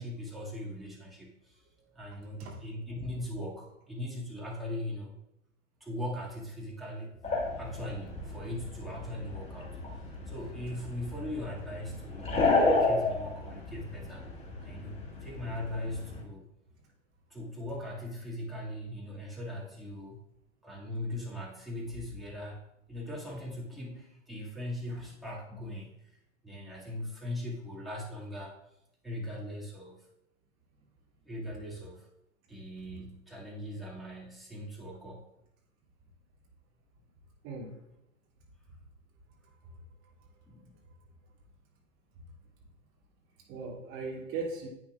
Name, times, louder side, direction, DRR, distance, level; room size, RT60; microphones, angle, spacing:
voice 1, 0.0-1.6 1.9-5.1 5.8-7.2 7.6-14.3 14.6-14.9 15.2-16.5 17.3-20.2 20.6-22.6 22.9-26.0 26.4-28.6 29.0-30.1 31.3-32.1 32.5-35.3 40.5-40.8, left 1 dB, ahead, -5 dB, 2.1 m, -40 dB
sound 1, 7.2-16.2, left 3 dB, 15° left, 1.9 m, -32 dB
voice 2, 37.4-37.8 43.5-44.7, right 4 dB, 35° right, -2 dB, 2.8 m, -38 dB
10.5 x 8.4 x 2.5 m, 0.82 s
hypercardioid pair, 115°, 37 cm